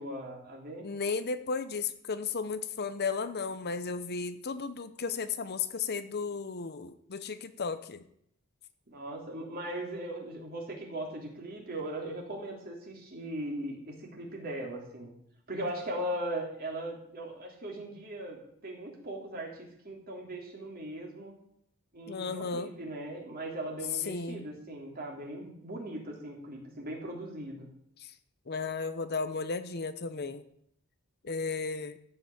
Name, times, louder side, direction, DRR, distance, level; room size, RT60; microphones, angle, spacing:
voice 1, 0.0-0.8 8.9-15.1 15.5-21.3 21.9-27.7, right 1 dB, 45° right, 0 dB, 3.4 m, -39 dB
voice 2, 0.8-8.0 22.1-22.7 24.1-24.4 28.0-28.1 28.5-30.4 31.2-32.0, left 4 dB, 45° left, 11 dB, 0.8 m, -34 dB
14.5 x 6.0 x 8.6 m, 0.71 s
head